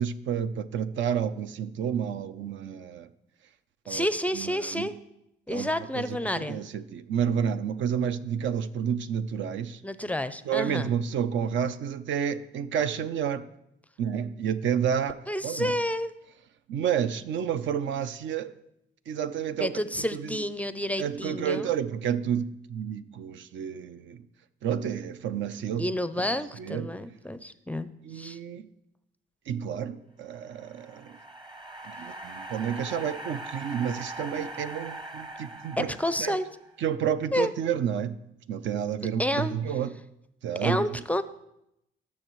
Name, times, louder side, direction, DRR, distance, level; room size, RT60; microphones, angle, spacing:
voice 1, 0.0-3.1 3.9-4.1 4.3-4.9 5.5-9.8 10.5-13.5 14.0-15.8 16.7-18.5 19.1-19.7 20.0-20.4 21.0-24.2 24.6-26.0 26.6-26.9 28.0-28.6 29.5-31.2 31.8-35.9 36.2-36.4 36.8-38.2 38.5-39.9 40.4-40.9, right 8 dB, 70° right, 0.5 m, -30 dB
voice 2, 3.9-5.0 5.5-6.6 9.8-10.9 15.3-16.1 19.6-21.7 25.8-27.9 28.1-28.4 35.8-36.5 37.3-37.5 39.2-39.6 40.6-41.2, left 1 dB, 5° left, 0.4 m, -29 dB
sound 1, 30.4-36.8, right 2 dB, 25° right, 0.9 m, -41 dB
19.0 x 6.4 x 3.1 m
cardioid pair, 90°, 20 cm